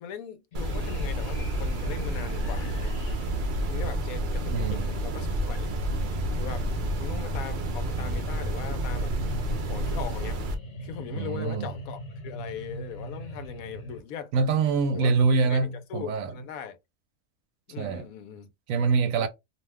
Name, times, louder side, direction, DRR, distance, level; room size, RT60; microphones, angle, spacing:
voice 1, 0.0-2.9 3.7-5.7 6.4-6.7 7.0-9.1 9.6-10.4 10.8-14.3 14.9-16.8 17.7-18.5 19.1-19.3, left 8 dB, 85° left, 1.1 m, -40 dB
sound 1, 0.5-14.0, right 1 dB, 65° left, 1.3 m, -39 dB
sound 2, 0.5-10.6, right 1 dB, 55° right, 0.5 m, -30 dB
voice 2, 4.5-4.9 11.1-11.7 14.3-16.3 17.8-18.1 18.7-19.3, right 4 dB, 75° right, 1.0 m, -25 dB
2.7 x 2.2 x 3.3 m
omnidirectional pair, 1.4 m